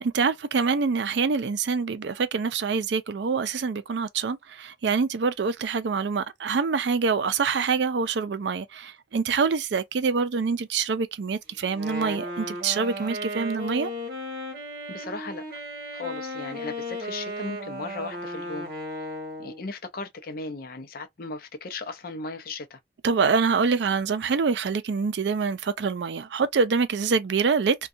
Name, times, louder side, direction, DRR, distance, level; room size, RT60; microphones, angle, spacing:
voice 1, 0.0-13.9 23.0-27.8, right 5 dB, 70° right, 0.4 m, -25 dB
Wind instrument woodwind instrument, 11.7-19.7, left 1 dB, 55° right, 1.1 m, -35 dB
voice 2, 14.9-15.4 15.9-18.7 19.4-22.8, left 3 dB, 50° left, 0.5 m, -36 dB
2.6 x 2.3 x 2.4 m
head